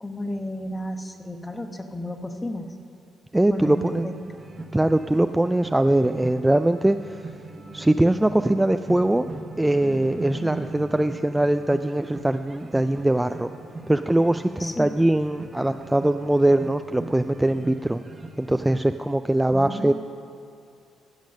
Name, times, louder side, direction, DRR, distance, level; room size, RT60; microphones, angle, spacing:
voice 1, 0.0-2.7 3.5-4.2 14.6-14.9 19.5-19.9, left 1 dB, 15° left, 6 dB, 1.0 m, -32 dB
voice 2, 3.3-4.1 4.7-7.2 7.7-9.2 9.6-13.5 13.9-18.0 18.4-19.9, right 1 dB, 10° right, 9 dB, 0.3 m, -22 dB
sound 1, 3.6-18.6, right 2 dB, 30° right, 1.2 m, -39 dB
14.5 x 7.3 x 6.4 m, 2.5 s
cardioid pair, 90°, 0 cm